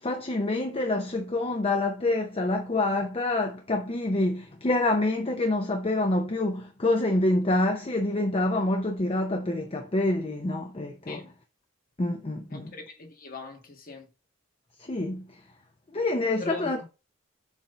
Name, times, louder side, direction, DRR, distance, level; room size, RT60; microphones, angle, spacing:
voice 1, 0.0-11.2 12.0-12.7 14.8-15.2 15.9-16.8, left 2 dB, 25° left, 0.6 m, -27 dB
voice 2, 12.5-14.1 16.4-16.7, left 3 dB, 40° left, 1.5 m, -41 dB
7.2 x 2.6 x 5.5 m
head